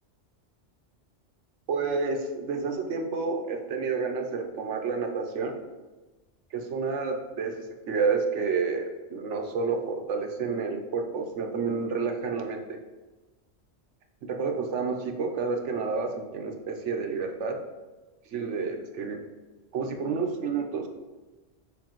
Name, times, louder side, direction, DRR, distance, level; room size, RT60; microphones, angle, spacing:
voice 1, 1.7-5.6 6.5-7.5 7.9-12.8 14.2-17.6 18.3-19.2 19.7-20.9, right 4 dB, 85° right, 4 dB, 1.1 m, -29 dB
7.2 x 5.0 x 3.0 m, 1.2 s
omnidirectional pair, 1.2 m